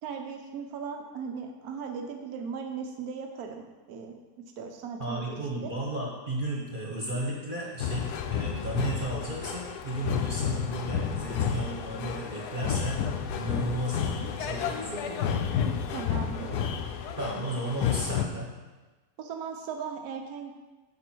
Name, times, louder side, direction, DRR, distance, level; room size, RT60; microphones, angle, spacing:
voice 1, 0.0-4.2 4.6-5.7 15.6-16.7 19.2-20.5, right 6 dB, 75° right, 3 dB, 1.4 m, -38 dB
voice 2, 5.0-15.4 16.3-16.4 17.2-18.5, right 1 dB, 35° right, -3 dB, 1.4 m, -34 dB
sound 1, 7.8-18.3, left 7 dB, 80° left, 1.2 m, -31 dB
9.4 x 7.1 x 4.6 m, 1.2 s
omnidirectional pair, 1.6 m